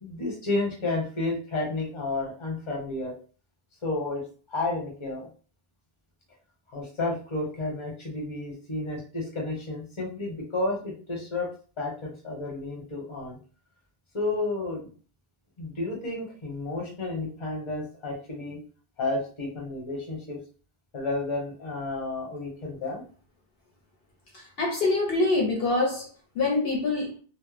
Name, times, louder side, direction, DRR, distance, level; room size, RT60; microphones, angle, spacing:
voice 1, 0.0-3.1 3.8-5.3 6.7-11.5 11.8-13.4 14.1-14.9 15.6-18.6 19.0-20.4 20.9-23.0, left 2 dB, 30° left, 0.8 m, -31 dB
voice 2, 24.3-26.1 26.4-27.2, left 2 dB, 70° left, 0.8 m, -25 dB
2.1 x 2.0 x 3.1 m
omnidirectional pair, 1.1 m